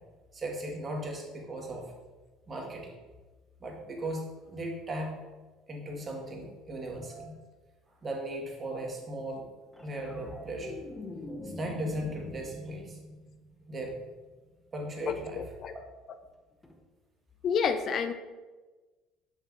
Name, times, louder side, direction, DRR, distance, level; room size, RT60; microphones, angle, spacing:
voice 1, 0.3-1.9 2.5-2.9 3.6-5.2 5.7-7.4 8.0-9.4 9.8-10.8 11.4-13.0 13.7-13.9 14.7-15.4, right 1 dB, 35° right, 0 dB, 1.5 m, -37 dB
sound 1, 9.7-14.2 16.6-16.8, left 2 dB, 15° left, 0.7 m, -43 dB
voice 2, 15.1-15.7 17.4-18.1, left 6 dB, 50° left, 9 dB, 0.4 m, -29 dB
6.7 x 5.7 x 2.6 m, 1.3 s
supercardioid pair, 80°, 0 cm